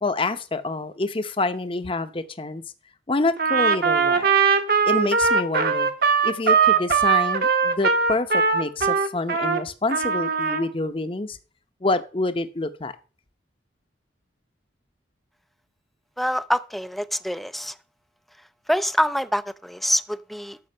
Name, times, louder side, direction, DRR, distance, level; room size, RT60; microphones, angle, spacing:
voice 1, 0.0-2.6 3.1-4.3 4.9-5.9 6.2-11.4 11.8-12.9, left 2 dB, 30° left, 0.7 m, -27 dB
Trumpet, 3.4-9.6 9.9-10.7, right 5 dB, 55° right, 1.2 m, -20 dB
voice 2, 16.2-17.8 18.7-20.6, equal, ahead, 0.4 m, -25 dB
12.5 x 5.4 x 5.4 m
head